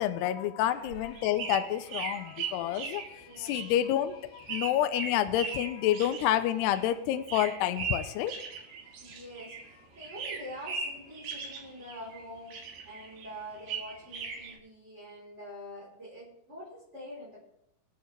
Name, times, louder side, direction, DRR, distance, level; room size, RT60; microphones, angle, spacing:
voice 1, 0.0-8.3, left 12 dB, 80° left, 10 dB, 2.6 m, -29 dB
sound 1, 0.7-9.7 10.0-12.2 12.5-14.5, right 5 dB, 65° right, 3.7 m, -39 dB
voice 2, 3.2-3.6 9.0-17.4, equal, 15° right, -7 dB, 4.0 m, -45 dB
25.5 x 8.9 x 3.4 m, 0.80 s
omnidirectional pair, 5.1 m